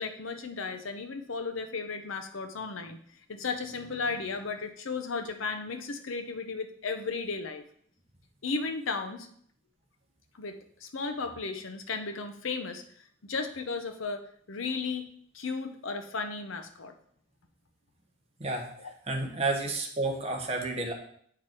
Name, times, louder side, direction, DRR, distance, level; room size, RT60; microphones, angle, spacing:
voice 1, 0.0-3.0 3.3-7.6 8.4-9.3 10.3-12.8 13.2-15.1 15.3-16.9 18.8-18.9, left 4 dB, 80° left, 7 dB, 0.8 m, -35 dB
voice 2, 18.4-18.7 19.1-20.9, right 2 dB, 30° right, 2 dB, 1.0 m, -30 dB
7.9 x 4.8 x 4.4 m, 0.64 s
head